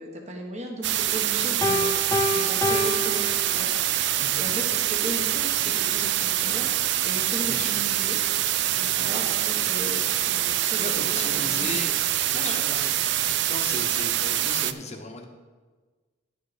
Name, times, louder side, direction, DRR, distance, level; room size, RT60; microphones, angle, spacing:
voice 1, 0.0-3.7 4.0-8.2 8.7-11.7 12.3-12.6, right 1 dB, 35° right, 2 dB, 1.3 m, -36 dB
sound 1, 0.8-14.7, right 12 dB, 55° right, 0.4 m, -25 dB
Piano, 1.6-4.0, left 1 dB, 15° left, 0.5 m, -27 dB
voice 2, 4.2-4.5 7.4-7.7 8.9-9.1 10.8-11.9 12.3-12.9 13.5-15.2, left 2 dB, 30° left, 4 dB, 1.0 m, -36 dB
10.5 x 6.7 x 5.1 m, 1.3 s
head